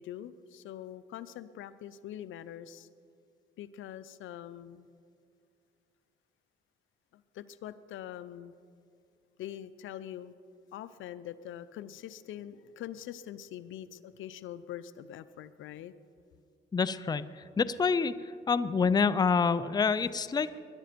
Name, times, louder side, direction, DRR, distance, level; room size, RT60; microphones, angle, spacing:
voice 1, 0.0-2.9 3.6-4.9 7.1-8.5 9.4-10.3 10.7-15.9 20.4-20.6, left 11 dB, 80° left, 14 dB, 0.6 m, -44 dB
voice 2, 16.7-18.1 18.5-20.6, left 5 dB, 20° left, 14 dB, 0.5 m, -27 dB
20.5 x 11.5 x 5.1 m, 2.3 s
cardioid pair, 90°, 20 cm